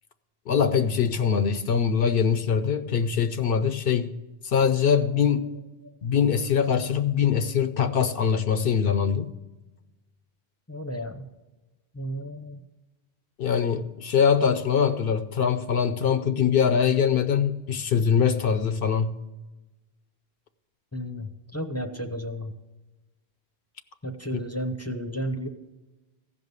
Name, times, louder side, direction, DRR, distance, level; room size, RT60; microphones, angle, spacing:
voice 1, 0.5-4.1 4.4-5.6 6.0-9.3 13.4-19.2, left 7 dB, 65° left, 0.7 m, -23 dB
voice 2, 10.7-11.3 11.9-12.6 20.9-22.5 24.0-25.5, equal, 15° left, 0.6 m, -33 dB
15.0 x 5.4 x 8.0 m
omnidirectional pair, 1.1 m